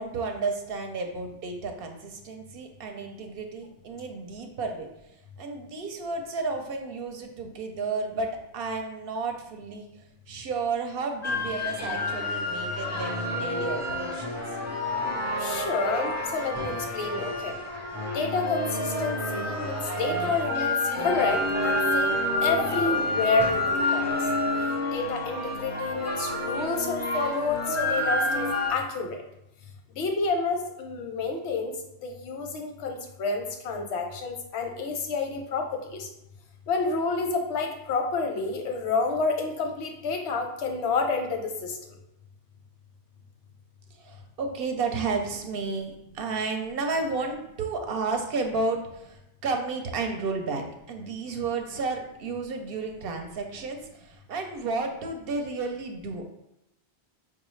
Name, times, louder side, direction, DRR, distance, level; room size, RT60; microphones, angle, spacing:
voice 1, 0.0-4.9 5.4-14.3 43.9-56.2, right 4 dB, 65° right, 4 dB, 0.7 m, -32 dB
sound 1, 11.2-28.7, left 1 dB, 20° left, 0.4 m, -28 dB
voice 2, 15.4-17.6 18.1-22.2 22.4-24.2 24.9-29.2 30.0-31.7 32.0-36.1 36.7-41.7, left 4 dB, 90° left, 3 dB, 0.9 m, -29 dB
4.7 x 2.3 x 3.1 m, 0.86 s
omnidirectional pair, 1.1 m